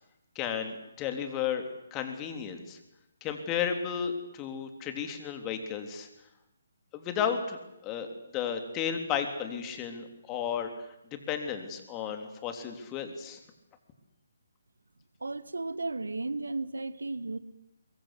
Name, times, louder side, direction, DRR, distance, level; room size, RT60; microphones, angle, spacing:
voice 1, 0.3-2.8 3.2-6.1 6.9-7.6 7.8-8.1 8.3-10.9 11.3-13.4, left 8 dB, 20° left, 6 dB, 3.3 m, -33 dB
voice 2, 15.2-17.4, right 3 dB, 75° right, 15 dB, 1.4 m, -34 dB
22.5 x 22.5 x 8.4 m, 0.88 s
figure-of-eight pair, 145°, 0 cm